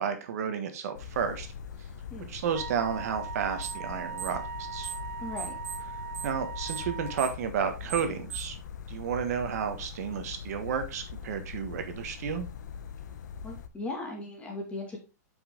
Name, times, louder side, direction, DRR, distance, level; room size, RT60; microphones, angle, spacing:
voice 1, 0.0-1.5 2.3-4.9 6.2-8.6 8.9-12.5, right 7 dB, 65° right, 8 dB, 1.4 m, -32 dB
sound 1, 0.9-13.7, left 7 dB, 90° left, 0.9 m, -42 dB
Wind instrument woodwind instrument, 2.5-7.4, right 6 dB, 85° right, 1.3 m, -40 dB
sound 2, 3.6-3.9 4.1-5.1 5.4-8.6, right 10 dB, 20° right, 3.2 m, -39 dB
voice 2, 5.2-5.6 13.4-15.0, left 2 dB, 15° left, 0 dB, 2.2 m, -37 dB
7.8 x 5.7 x 3.7 m, 0.28 s
hypercardioid pair, 155°, 9 cm